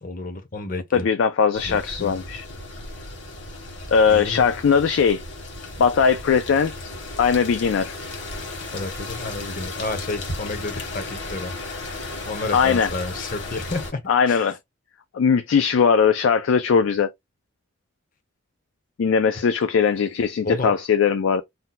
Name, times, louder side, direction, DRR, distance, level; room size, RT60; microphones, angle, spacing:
voice 1, 0.0-1.1 1.6-2.2 4.1-4.5 8.7-11.5 12.2-14.5 20.4-20.8, left 2 dB, 40° left, 0.7 m, -31 dB
voice 2, 0.9-2.4 3.9-5.2 5.8-6.7 7.2-7.9 12.5-12.9 14.1-14.6 15.1-17.1 19.0-21.4, left 6 dB, 75° left, 0.4 m, -19 dB
sound 1, 1.5-13.9, left 2 dB, 60° left, 1.3 m, -35 dB
2.7 x 2.2 x 3.8 m
head